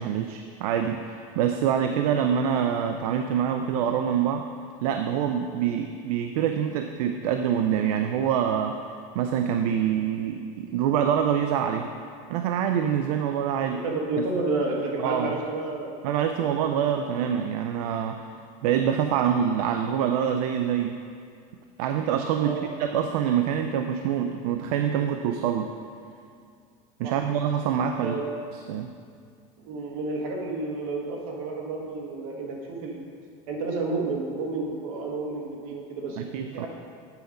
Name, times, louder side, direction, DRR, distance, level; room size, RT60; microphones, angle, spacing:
voice 1, 0.0-4.5 4.8-8.8 9.1-11.9 12.3-13.8 15.0-15.3 16.0-18.3 18.6-21.0 21.8-25.7 27.0-28.2 28.7-28.9 36.2-36.7, right 8 dB, 85° right, 6 dB, 0.5 m, -25 dB
voice 2, 13.8-15.9 22.4-22.7 27.0-27.1 28.0-28.2 29.6-33.0 33.5-36.3 36.5-36.7, right 3 dB, 70° right, -1 dB, 1.6 m, -30 dB
8.2 x 5.3 x 5.0 m, 2.3 s
cardioid pair, 165°, 19 cm